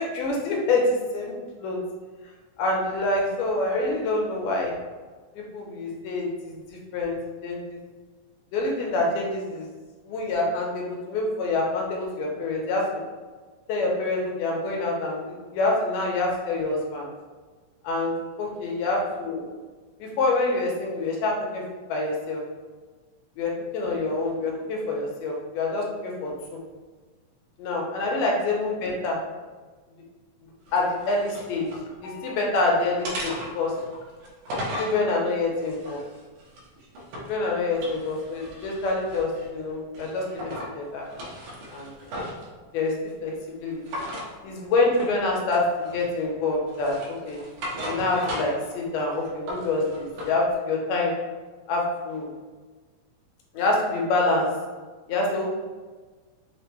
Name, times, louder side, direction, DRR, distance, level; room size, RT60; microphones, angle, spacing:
voice 1, 0.0-1.3 1.6-1.8 2.6-4.7 5.4-7.8 8.5-9.7 10.0-13.0 13.7-17.1 17.8-18.1 18.4-19.5 20.0-21.6 21.9-22.4 23.4-26.3 27.6-29.2 30.4-33.7 34.8-36.0 37.3-41.1 41.7-41.9 42.7-42.9 43.2-43.8 44.4-47.4 47.9-51.1 51.7-52.4 53.5-54.5 55.1-55.5, left 2 dB, 85° left, -1 dB, 2.3 m, -26 dB
sound 1, 30.7-31.9 32.3-32.6 33.0-35.0 35.6-37.4 37.7-39.5 39.9-40.7 41.1-42.5 43.8-44.3 44.9-45.2 45.5-46.2 46.7-48.7 49.0-50.3, equal, 85° right, 2.5 m, -36 dB
6.0 x 2.2 x 2.9 m, 1.4 s
omnidirectional pair, 3.8 m